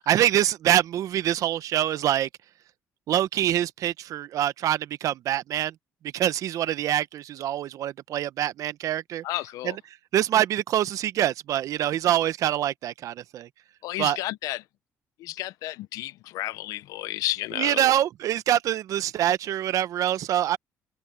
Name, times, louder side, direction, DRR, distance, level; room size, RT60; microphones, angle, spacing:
voice 1, 0.0-2.3 3.1-5.7 6.1-9.2 10.1-13.5 14.0-14.2 17.6-20.6, right 12 dB, 70° right, 1.0 m, -25 dB
voice 2, 9.2-9.8 13.8-14.6 15.2-17.9, left 16 dB, 80° left, 0.9 m, -32 dB
supercardioid pair, 70°, 6 cm